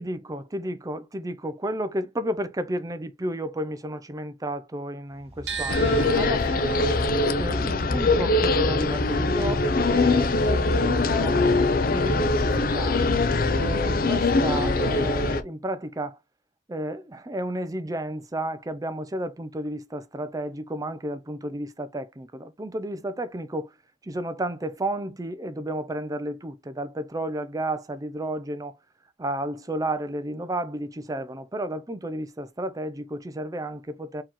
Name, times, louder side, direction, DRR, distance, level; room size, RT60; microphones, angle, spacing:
voice 1, 0.0-6.9 7.4-11.4 11.9-16.2 16.7-23.7 24.0-28.8 29.2-34.2, right 1 dB, 20° right, 0.5 m, -32 dB
sound 1, 5.1-8.1, equal, 35° right, 1.7 m, -45 dB
sound 2, 5.5-11.5 11.8-13.1, right 6 dB, 75° right, 1.3 m, -40 dB
sound 3, 5.7-15.4, left 2 dB, 55° left, 0.6 m, -22 dB
4.6 x 3.0 x 3.7 m
head